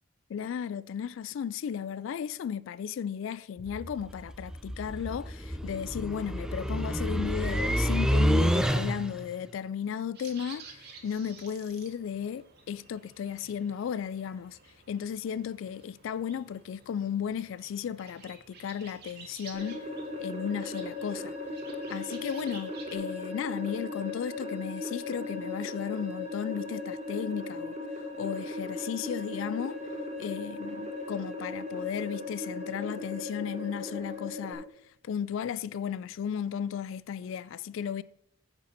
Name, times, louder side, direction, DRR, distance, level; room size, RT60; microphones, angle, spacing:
voice 1, 0.3-14.6 14.9-19.9 20.2-21.4 21.9-29.8 30.2-34.7 35.0-38.0, left 8 dB, 70° left, 0.3 m, -35 dB
sound 1, 3.6-9.3, equal, 5° right, 0.5 m, -28 dB
sound 2, 10.1-23.0, right 4 dB, 55° right, 1.7 m, -52 dB
sound 3, 19.5-34.5, left 2 dB, 35° right, 1.7 m, -37 dB
9.5 x 4.9 x 5.9 m
head